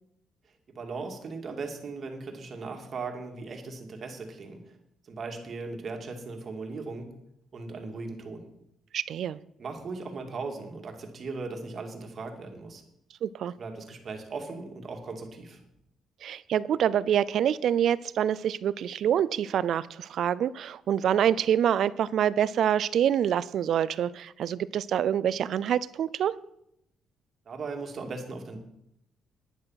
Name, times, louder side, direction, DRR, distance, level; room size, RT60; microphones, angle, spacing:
voice 1, 0.7-4.8 5.0-7.1 7.5-8.4 9.6-12.8 13.5-15.6 27.5-28.6, right 4 dB, 50° right, 3 dB, 2.3 m, -38 dB
voice 2, 8.9-9.4 13.2-13.5 16.2-26.3, right 9 dB, 70° right, 19 dB, 0.4 m, -26 dB
10.5 x 10.0 x 5.8 m, 0.79 s
cardioid pair, 90°, 0 cm